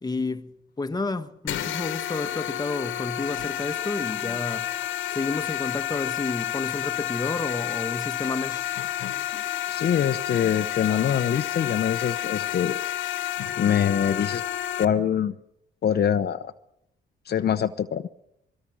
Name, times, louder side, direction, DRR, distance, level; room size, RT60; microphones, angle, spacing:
voice 1, 0.0-0.5 0.8-4.8 5.1-8.6, left 3 dB, 20° left, 1.4 m, -30 dB
sound 1, 1.5-14.9, left 12 dB, 80° left, 1.5 m, -30 dB
voice 2, 9.7-12.8 13.6-14.4 14.8-15.3 15.8-16.5 17.3-18.1, left 9 dB, 55° left, 0.9 m, -24 dB
24.0 x 23.0 x 6.3 m
cardioid pair, 90°, 20 cm